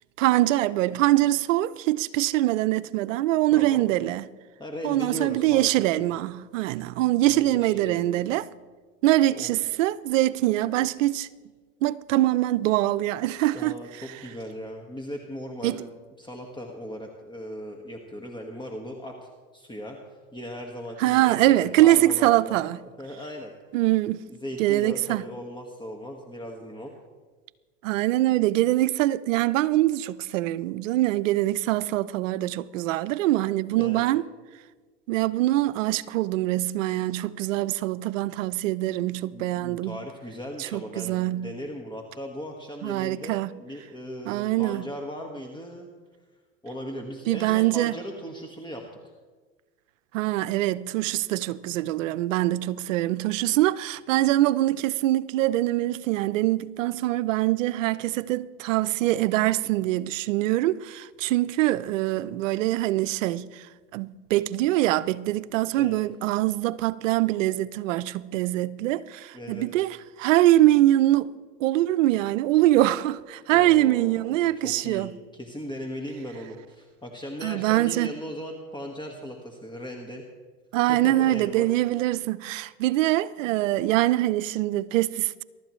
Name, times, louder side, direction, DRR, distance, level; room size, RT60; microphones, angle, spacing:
voice 1, 0.2-4.2 4.8-8.5 9.0-11.3 11.8-13.8 15.6-15.8 21.0-22.8 23.7-24.2 24.6-25.2 27.8-34.2 35.1-40.0 40.6-41.5 42.8-43.5 44.3-44.8 47.3-48.0 50.1-63.5 63.9-71.3 71.6-75.1 77.4-78.1 80.7-85.4, right 15 dB, 80° right, 0.6 m, -23 dB
voice 2, 3.5-3.9 4.6-6.1 7.2-8.2 9.3-9.5 13.5-15.8 16.2-20.0 20.3-22.6 23.0-23.5 24.3-26.9 33.8-34.0 39.3-45.9 46.6-48.8 65.8-66.0 69.3-69.6 73.5-80.2 80.8-81.7, equal, 10° left, 1.5 m, -38 dB
23.0 x 12.5 x 3.1 m
hypercardioid pair, 100°, 38 cm